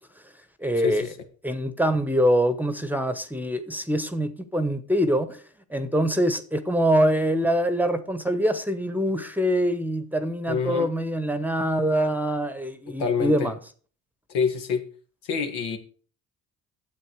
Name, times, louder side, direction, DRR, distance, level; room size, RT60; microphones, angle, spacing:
voice 1, 0.6-1.1 1.4-5.4 5.7-13.5, equal, 5° right, 1.0 m, -24 dB
voice 2, 10.5-10.9 12.9-13.5 14.3-14.9 15.3-15.8, left 6 dB, 80° left, 1.8 m, -26 dB
9.4 x 7.7 x 4.7 m
supercardioid pair, 90°, 39 cm